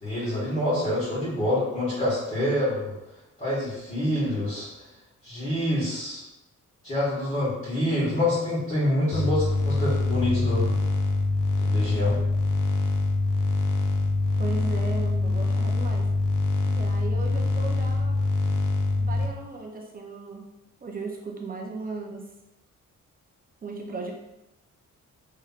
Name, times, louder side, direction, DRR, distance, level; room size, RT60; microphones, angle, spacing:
voice 1, 0.0-2.9 3.4-4.8 5.2-6.2 6.8-10.7 11.6-12.2, left 1 dB, 25° left, -11 dB, 1.5 m, -26 dB
sound 1, 9.1-19.3, left 2 dB, 90° left, 0.6 m, -24 dB
voice 2, 14.4-16.1 16.7-18.2 18.5-18.6 19.0-20.4 20.8-22.2 23.6-24.1, right 3 dB, 30° right, 0 dB, 0.5 m, -36 dB
5.5 x 3.1 x 2.4 m, 0.93 s
wide cardioid pair, 145°, 31 cm